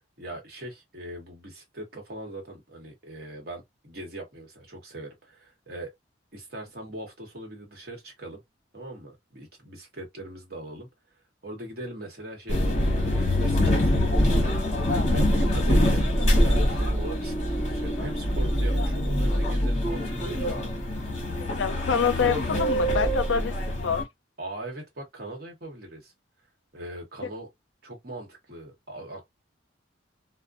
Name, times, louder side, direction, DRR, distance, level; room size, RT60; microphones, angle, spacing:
voice 1, 0.2-5.9 6.3-8.4 8.7-10.9 11.4-14.6 15.1-20.5 24.4-26.1 26.7-27.5 27.8-29.2, right 1 dB, 50° right, 1.1 m, -40 dB
sound 1, 12.5-24.0, equal, 35° left, 1.0 m, -24 dB
voice 2, 21.4-23.6 23.8-24.1, left 6 dB, 70° left, 0.4 m, -26 dB
2.4 x 2.1 x 2.5 m
head